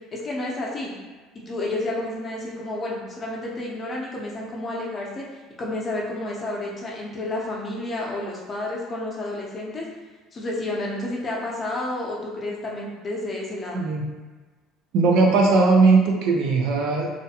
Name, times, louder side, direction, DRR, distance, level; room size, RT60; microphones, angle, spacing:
voice 1, 0.1-0.9 1.3-5.3 5.6-9.8 10.3-13.8, left 2 dB, 30° left, -3 dB, 0.6 m, -30 dB
voice 2, 14.9-17.1, right 3 dB, 65° right, 0 dB, 0.4 m, -18 dB
2.4 x 2.2 x 2.7 m, 1.3 s
supercardioid pair, 105°, 0 cm